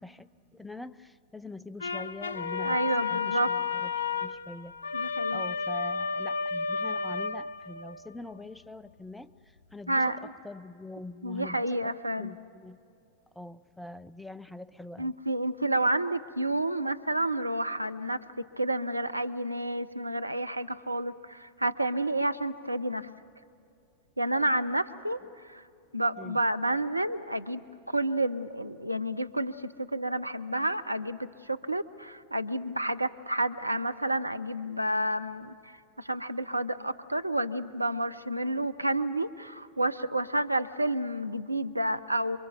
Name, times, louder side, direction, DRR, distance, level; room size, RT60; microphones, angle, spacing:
voice 1, 0.0-4.8 5.3-12.8 13.3-15.1 26.2-26.4, left 2 dB, 5° left, 16 dB, 0.6 m, -44 dB
sound 1, 1.8-8.1, left 5 dB, 70° left, 0.5 m, -32 dB
voice 2, 2.6-3.5 4.9-5.4 9.9-10.2 11.2-12.3 15.0-18.2 18.6-23.1 24.2-25.6 25.9-42.4, right 1 dB, 85° right, 11 dB, 0.6 m, -30 dB
28.0 x 24.0 x 7.0 m, 2.5 s
figure-of-eight pair, 90°, 0 cm